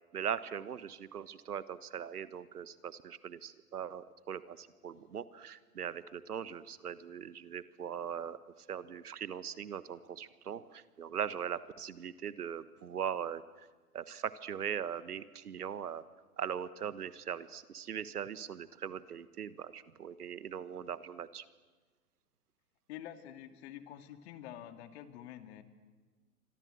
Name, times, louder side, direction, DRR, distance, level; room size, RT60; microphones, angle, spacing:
voice 1, 0.1-8.4 8.7-13.7 13.9-16.0 16.4-21.4, right 8 dB, 70° right, 15 dB, 1.4 m, -40 dB
voice 2, 22.9-25.6, left 11 dB, 45° left, 8 dB, 2.5 m, -47 dB
29.0 x 25.0 x 7.8 m, 1.4 s
figure-of-eight pair, 120°, 46 cm